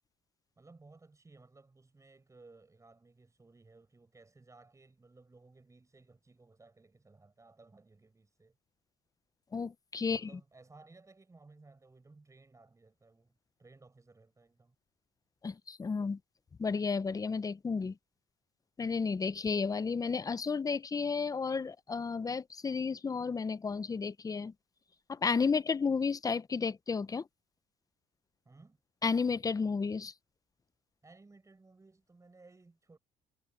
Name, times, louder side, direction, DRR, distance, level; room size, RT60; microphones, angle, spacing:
voice 1, 0.6-8.6 10.0-14.7 28.4-28.8 31.0-33.0, right 3 dB, 20° right, 7.9 m, -59 dB
voice 2, 9.5-10.3 15.4-16.2 16.6-17.9 18.8-24.5 25.1-27.2 29.0-30.1, left 5 dB, 20° left, 0.6 m, -32 dB
cardioid pair, 110°, 17 cm